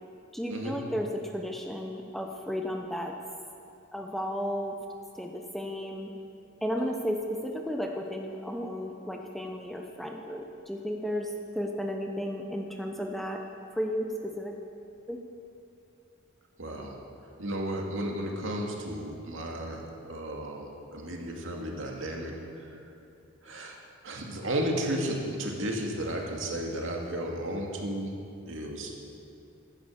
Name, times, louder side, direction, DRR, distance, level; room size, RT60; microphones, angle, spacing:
voice 1, 0.3-3.1 3.9-4.8 5.1-6.1 6.6-13.4 13.7-14.6 15.1-15.2, equal, ahead, 2 dB, 0.8 m, -33 dB
voice 2, 16.6-17.0 17.4-22.3 22.6-22.7 23.4-23.8 24.0-28.1 28.4-28.9, right 1 dB, 80° right, 0 dB, 2.3 m, -33 dB
15.0 x 10.5 x 7.3 m, 2.7 s
head